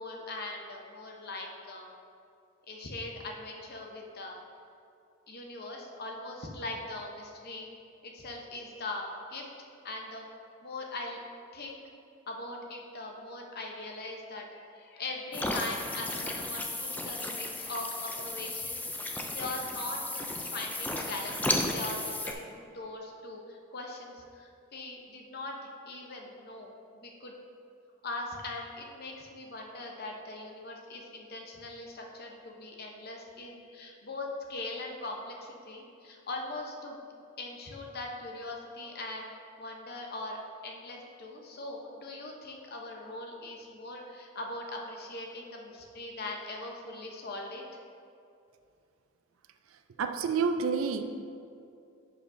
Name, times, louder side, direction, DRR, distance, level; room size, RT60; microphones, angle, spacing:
voice 1, 0.0-1.9 2.7-4.4 5.3-7.7 8.0-9.5 9.8-10.3 10.6-11.2 11.5-11.8 12.3-27.4 28.0-37.0 37.4-39.3 39.6-40.4 40.6-47.6, left 2 dB, 50° left, 1 dB, 0.8 m, -41 dB
sound 1, 15.3-22.3, left 2 dB, 10° left, 0.4 m, -34 dB
voice 2, 49.7-51.0, right 5 dB, 75° right, 8 dB, 0.4 m, -29 dB
10.5 x 4.9 x 2.6 m, 2.5 s
head